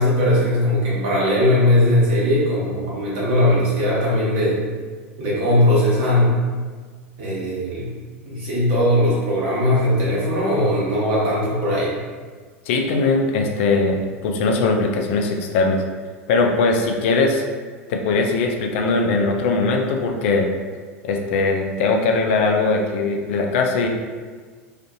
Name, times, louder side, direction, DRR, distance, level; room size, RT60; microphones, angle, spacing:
voice 1, 0.0-4.6 5.2-6.3 7.2-7.9 8.2-11.9, left 1 dB, 60° right, -7 dB, 1.2 m, -19 dB
voice 2, 12.7-15.8 16.3-17.4 17.9-20.5 21.0-23.9, left 3 dB, 60° left, 2 dB, 0.4 m, -20 dB
2.5 x 2.5 x 2.5 m, 1.5 s
hypercardioid pair, 90°, 8 cm